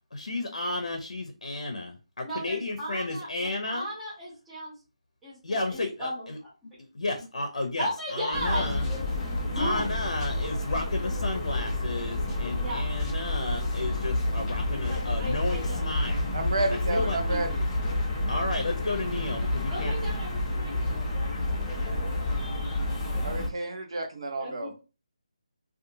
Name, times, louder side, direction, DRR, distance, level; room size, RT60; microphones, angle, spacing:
voice 1, 0.1-3.9 5.4-6.4 6.9-8.9 9.5-16.3 16.7-17.2 18.3-20.0, left 2 dB, 75° left, 4 dB, 0.6 m, -32 dB
voice 2, 2.2-4.7 5.2-6.3 7.8-8.7 9.5-9.8 12.5-12.8 14.9-15.9 16.9-17.4 19.7-22.4 24.4-24.8, equal, 5° right, -10 dB, 0.8 m, -36 dB
sound 1, 8.3-23.5, left 1 dB, 10° left, 0.4 m, -29 dB
voice 3, 16.3-17.6 23.2-24.7, right 2 dB, 50° right, 4 dB, 0.7 m, -30 dB
2.7 x 2.4 x 2.7 m, 0.32 s
figure-of-eight pair, 170°, 4 cm